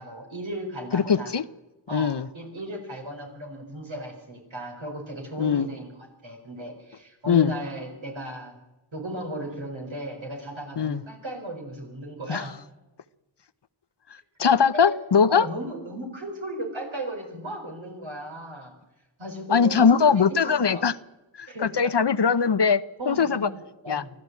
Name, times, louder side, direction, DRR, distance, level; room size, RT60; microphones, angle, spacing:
voice 1, 0.0-1.3 1.9-8.5 8.9-12.5 14.9-15.0 15.3-18.7 19.2-20.8 21.5-21.9 23.0-24.1, right 1 dB, 75° right, 1 dB, 4.8 m, -36 dB
voice 2, 0.9-1.4 1.9-2.3 5.4-5.7 7.3-7.5 10.8-11.0 12.3-12.4 14.4-15.5 19.5-20.9 21.4-23.5 23.9-24.0, left 6 dB, 60° left, 15 dB, 0.8 m, -21 dB
24.0 x 14.5 x 8.3 m, 1.0 s
wide cardioid pair, 40°, 46 cm